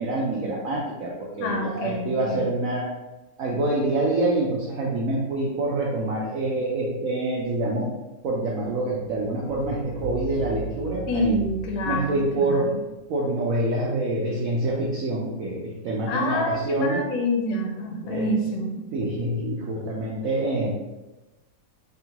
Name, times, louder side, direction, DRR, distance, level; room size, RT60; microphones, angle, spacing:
voice 1, 0.0-2.9 3.4-7.9 8.2-11.4 11.8-12.7 13.1-17.0 18.0-18.3 18.9-20.8, right 2 dB, 80° right, -3 dB, 0.7 m, -26 dB
voice 2, 1.4-2.5 11.1-12.7 16.1-18.8, left 1 dB, 70° left, 1 dB, 1.1 m, -27 dB
sound 1, 8.6-13.1 13.3-13.4, right 3 dB, 90° left, 1.5 m, -38 dB
3.6 x 2.4 x 2.8 m, 1.1 s
omnidirectional pair, 2.0 m